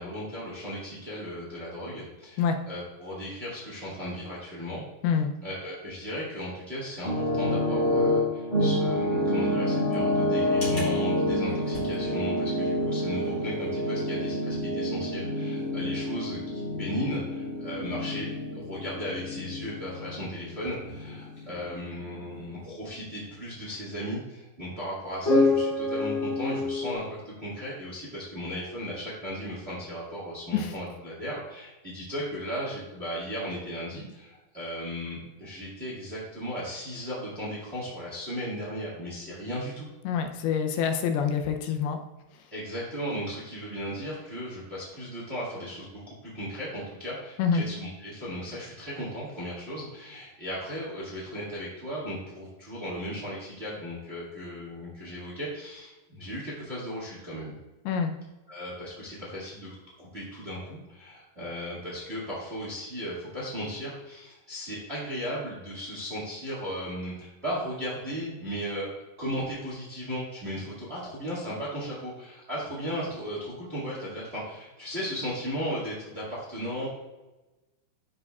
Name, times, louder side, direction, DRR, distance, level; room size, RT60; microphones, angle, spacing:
voice 1, 0.0-2.4 2.7-4.8 5.4-39.9 42.5-57.5 58.5-76.9, equal, 30° right, -6 dB, 1.1 m, -36 dB
sound 1, 7.0-22.6 22.9-23.1 25.2-26.9, left 1 dB, 20° left, 2.4 m, -28 dB
voice 2, 40.0-42.0 42.3-42.5 47.4-47.6 57.9-58.1, left 6 dB, 80° left, 5 dB, 2.6 m, -26 dB
12.0 x 5.2 x 2.4 m, 1.1 s
omnidirectional pair, 4.5 m